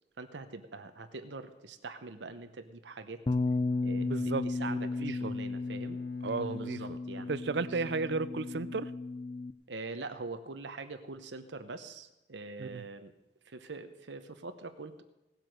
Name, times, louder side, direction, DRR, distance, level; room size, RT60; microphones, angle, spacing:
voice 1, 0.2-3.2 3.8-4.1 4.4-6.0 6.4-7.3 7.6-7.9 9.7-13.1 13.4-15.0, right 3 dB, 85° right, 8 dB, 0.9 m, -43 dB
Bowed string instrument, 3.3-7.7, equal, 65° left, 1.4 m, -60 dB
Bass guitar, 3.3-9.5, left 3 dB, 30° left, 0.4 m, -34 dB
voice 2, 4.0-5.3 6.2-7.0 7.3-8.9 12.6-12.8, right 4 dB, 65° right, 16 dB, 0.5 m, -34 dB
17.0 x 7.9 x 6.5 m, 0.98 s
head